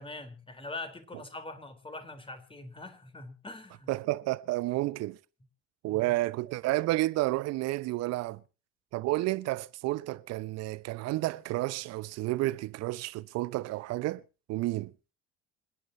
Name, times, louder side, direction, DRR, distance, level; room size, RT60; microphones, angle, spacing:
voice 1, 0.0-3.9 5.9-6.2, left 2 dB, 15° left, 3.8 m, -43 dB
voice 2, 3.9-5.2 5.8-8.4 8.9-14.2 14.5-14.9, right 18 dB, 60° right, 1.0 m, -31 dB
27.5 x 10.5 x 2.8 m
hypercardioid pair, 55°, 30 cm